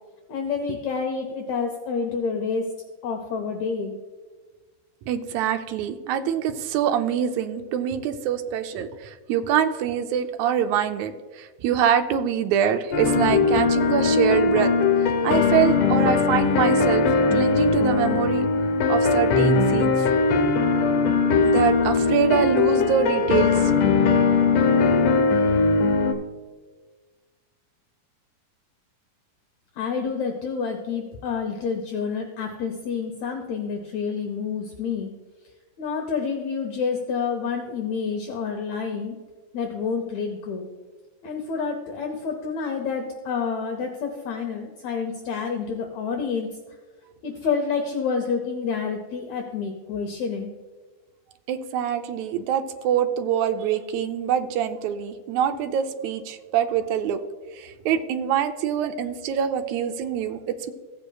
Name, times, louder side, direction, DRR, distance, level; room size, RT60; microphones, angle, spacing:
voice 1, 0.3-2.7 3.0-3.9 29.8-35.1 35.8-39.1 39.5-40.7 41.2-46.5 47.2-50.5, left 5 dB, 70° left, 3 dB, 1.9 m, -28 dB
voice 2, 5.1-14.7 15.2-18.4 18.9-20.1 21.4-23.7 51.5-57.2 57.5-60.7, right 9 dB, 80° right, 6 dB, 1.7 m, -25 dB
sound 1, 12.9-26.1, left 4 dB, 90° left, 1.3 m, -20 dB
15.5 x 8.1 x 2.3 m, 1.4 s
omnidirectional pair, 3.8 m